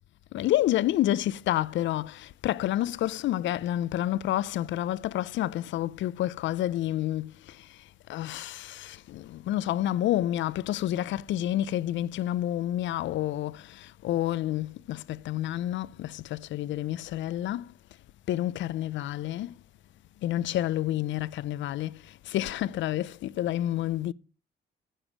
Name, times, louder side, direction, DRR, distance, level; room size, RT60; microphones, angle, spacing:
voice 1, 0.3-17.7 18.3-19.5 20.2-24.1, left 13 dB, 70° left, 0.4 m, -29 dB
10.0 x 7.1 x 6.1 m
cardioid pair, 90°, 20 cm